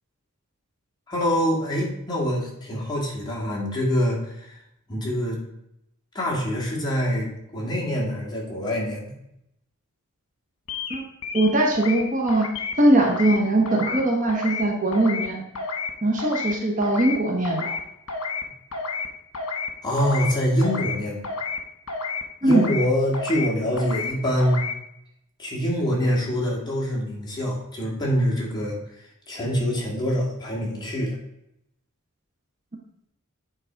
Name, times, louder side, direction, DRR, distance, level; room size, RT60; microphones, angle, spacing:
voice 1, 1.1-4.5 4.9-5.4 6.1-9.1 19.8-21.2 22.4-24.7 25.4-28.8 29.3-31.2, equal, 20° left, -4 dB, 2.1 m, -25 dB
sound 1, 10.7-11.0 11.2-12.0 12.3-12.8 13.0-13.4 13.7-14.0 14.3-14.6 14.9-15.3 15.6-15.9 16.2-16.5 16.8-17.2 17.4-17.8 18.1-18.4 18.7-19.1 19.3-19.7 20.0-20.3 20.6-21.0 21.2-21.6 21.9-22.2 22.5-22.9 23.1-23.5 23.8-24.1 24.4-24.7, left 4 dB, 75° left, 1.4 m, -30 dB
voice 2, 11.3-12.5 12.8-15.4 16.0-17.7 22.4-22.7, right 1 dB, 35° right, 1 dB, 1.1 m, -21 dB
8.7 x 4.0 x 5.1 m, 0.81 s
head